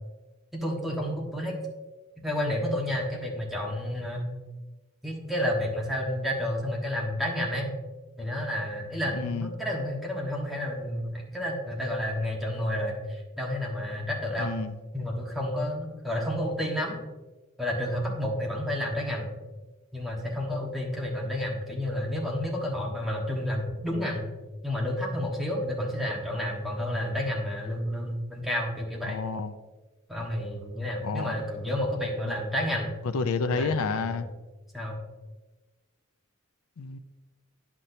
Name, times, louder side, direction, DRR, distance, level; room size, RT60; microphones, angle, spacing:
voice 1, 0.5-1.6 2.2-4.3 5.0-7.7 8.2-14.6 14.9-17.0 17.6-19.3 19.9-24.2 24.6-29.2 30.1-32.9 33.5-34.2 34.7-35.0, left 1 dB, ahead, -2 dB, 1.3 m, -30 dB
voice 2, 9.1-9.5 14.4-14.8 29.0-29.5 31.0-31.4 32.3-32.4 33.0-34.3 36.8-37.0, left 4 dB, 90° left, 9 dB, 0.4 m, -30 dB
9.8 x 6.0 x 2.7 m, 1.2 s
head